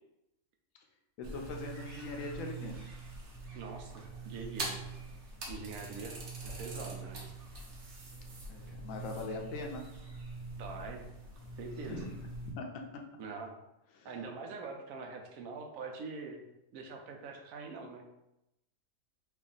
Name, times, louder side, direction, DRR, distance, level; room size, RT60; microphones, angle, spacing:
voice 1, 1.2-2.8 8.5-9.8 11.9-12.1 12.6-12.7 14.0-14.1, left 3 dB, 80° left, 2 dB, 1.0 m, -41 dB
sound 1, 1.2-12.5, right 3 dB, 60° right, 1.1 m, -44 dB
voice 2, 3.5-4.8 5.5-7.3 10.6-11.1 11.6-12.1 13.2-13.5 14.0-16.4 16.7-18.0, right 4 dB, 85° right, 2 dB, 1.0 m, -44 dB
3.4 x 2.4 x 3.8 m, 0.89 s
omnidirectional pair, 1.4 m